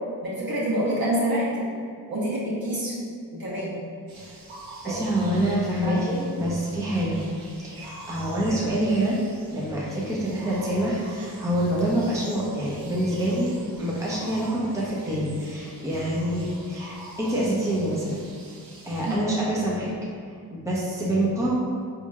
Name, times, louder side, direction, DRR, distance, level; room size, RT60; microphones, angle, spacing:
voice 1, 0.2-1.6 2.1-3.0 3.3-3.7 4.8-5.0 5.8-6.0 19.1-19.4, equal, 50° right, -7 dB, 1.5 m, -27 dB
sound 1, 4.1-19.2, right 2 dB, 80° right, 0.8 m, -45 dB
voice 2, 4.8-7.2 7.5-7.8 8.1-9.2 9.5-13.5 13.8-18.2 18.8-19.9 20.5-21.5, right 1 dB, 5° right, -6 dB, 0.9 m, -26 dB
4.0 x 3.0 x 2.4 m, 2.3 s
supercardioid pair, 40°, 46 cm